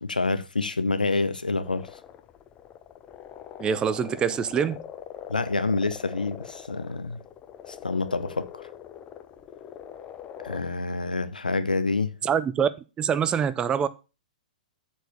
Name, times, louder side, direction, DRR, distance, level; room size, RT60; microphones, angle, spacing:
voice 1, 0.0-1.9 5.3-7.2 7.7-8.6 10.4-12.1, left 3 dB, 85° left, 0.9 m, -27 dB
sound 1, 1.6-10.6, left 9 dB, 25° left, 0.7 m, -43 dB
voice 2, 3.6-4.8 12.2-12.7 13.0-13.9, right 7 dB, 20° right, 0.6 m, -24 dB
7.7 x 4.7 x 6.8 m
figure-of-eight pair, 110°, 4 cm